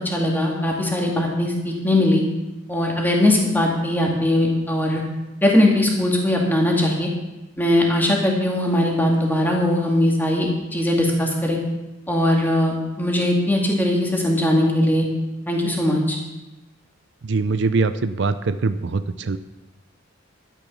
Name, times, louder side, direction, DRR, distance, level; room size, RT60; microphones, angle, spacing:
voice 1, 0.0-2.2 2.7-5.0 5.4-7.1 7.6-11.6 12.1-15.1 15.5-16.2, left 1 dB, 10° left, -1 dB, 2.4 m, -20 dB
voice 2, 17.2-19.4, right 3 dB, 60° right, 11 dB, 0.5 m, -22 dB
12.0 x 10.0 x 6.2 m, 1.0 s
head